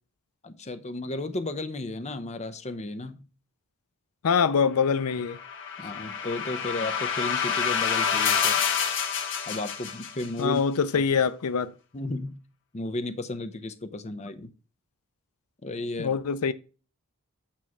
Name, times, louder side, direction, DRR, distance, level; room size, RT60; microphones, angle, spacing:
voice 1, 0.4-3.2 5.8-8.6 9.5-10.6 11.9-12.4 12.7-14.5 15.6-16.2, left 2 dB, 30° left, 0.7 m, -34 dB
voice 2, 4.2-5.4 10.4-11.7 16.0-16.5, left 6 dB, 90° left, 0.5 m, -24 dB
sound 1, 5.1-10.4, left 7 dB, 60° left, 1.3 m, -28 dB
8.7 x 3.1 x 6.0 m
head